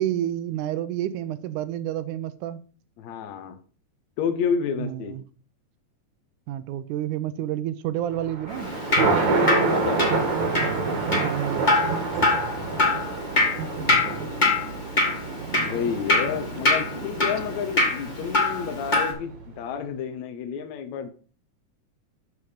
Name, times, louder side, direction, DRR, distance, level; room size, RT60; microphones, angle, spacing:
voice 1, 0.0-2.6 4.8-5.2 6.5-8.7 11.1-12.0 15.4-15.7, right 12 dB, 90° right, 2.1 m, -29 dB
voice 2, 3.0-3.6 4.2-5.2 9.0-10.3 12.6-13.2 15.6-21.1, left 7 dB, 70° left, 2.2 m, -30 dB
Thunder, 8.1-19.5, right 4 dB, 70° right, 2.8 m, -28 dB
Drip, 8.5-19.1, left 2 dB, 25° left, 1.0 m, -25 dB
7.2 x 6.4 x 5.1 m
omnidirectional pair, 3.4 m